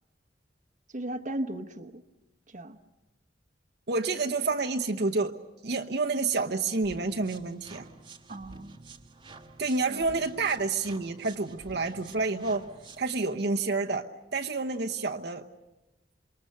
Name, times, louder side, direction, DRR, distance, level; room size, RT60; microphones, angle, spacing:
voice 1, 0.9-2.0 2.5-2.8 8.3-8.8 9.9-10.1, right 1 dB, 45° right, 8 dB, 1.1 m, -36 dB
voice 2, 3.9-5.4 5.6-7.9 9.6-12.7 13.0-14.1 14.3-15.5, right 3 dB, 65° right, 3 dB, 1.0 m, -29 dB
sound 1, 6.8-13.2, right 3 dB, 25° right, 1.3 m, -50 dB
27.5 x 23.0 x 6.7 m, 1.0 s
head